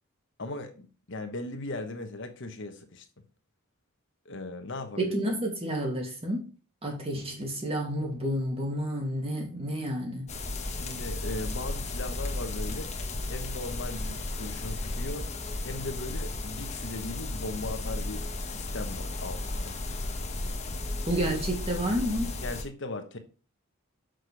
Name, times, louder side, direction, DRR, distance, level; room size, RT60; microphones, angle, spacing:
voice 1, 0.4-3.1 4.2-5.2 10.7-12.9 13.3-15.3 15.6-19.8 22.4-23.2, left 2 dB, 55° left, 1.1 m, -38 dB
voice 2, 5.0-6.5 6.8-10.3 21.1-22.3, equal, 25° right, 2.4 m, -30 dB
sound 1, 10.3-22.6, left 2 dB, 30° left, 1.2 m, -34 dB
6.5 x 6.4 x 5.1 m
head